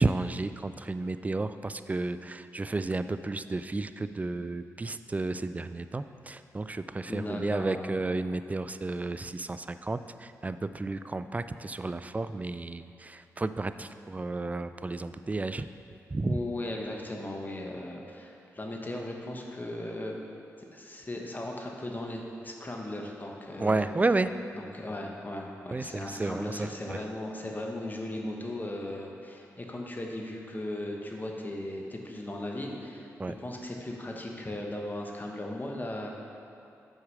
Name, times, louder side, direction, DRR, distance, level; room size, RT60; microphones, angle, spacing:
voice 1, 0.0-15.7 16.1-16.4 23.6-24.3 25.7-27.0 33.2-33.3, right 3 dB, 25° right, 12 dB, 0.3 m, -32 dB
voice 2, 7.1-7.9 16.2-20.2 20.7-23.9 24.5-36.1, left 1 dB, 30° left, 0 dB, 1.1 m, -37 dB
6.4 x 4.7 x 6.2 m, 2.7 s
cardioid pair, 50°, 6 cm